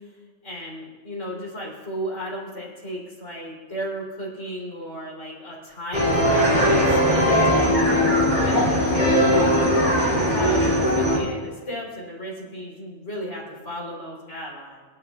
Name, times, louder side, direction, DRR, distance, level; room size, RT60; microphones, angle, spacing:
voice 1, 0.4-9.8 10.1-14.8, equal, 70° left, -3 dB, 3.9 m, -34 dB
sound 1, 5.9-11.2, equal, 35° left, 3.3 m, -19 dB
26.5 x 10.0 x 2.4 m, 1.4 s
omnidirectional pair, 1.3 m